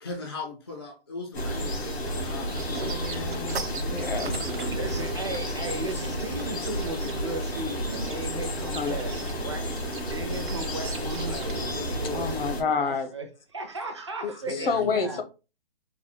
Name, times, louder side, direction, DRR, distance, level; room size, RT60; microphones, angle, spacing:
voice 1, 0.0-3.2 4.1-5.1 14.5-15.2, left 2 dB, 25° left, 0.4 m, -39 dB
sound 1, 1.3-12.6, equal, 90° left, 2.3 m, -31 dB
sound 2, 2.6-7.1 7.9-8.2 8.6-11.7, right 5 dB, 55° right, 0.9 m, -42 dB
voice 2, 2.8-4.4 8.7-9.0 12.1-13.1 14.2-15.2, left 5 dB, 65° left, 0.9 m, -29 dB
sound 3, 3.2-8.7 9.0-9.2 9.5-14.5, right 7 dB, 80° right, 0.6 m, -46 dB
voice 3, 4.7-9.6 10.1-13.3 13.5-15.2, right 2 dB, 30° right, 0.5 m, -36 dB
4.1 x 2.3 x 4.4 m
hypercardioid pair, 170°, 31 cm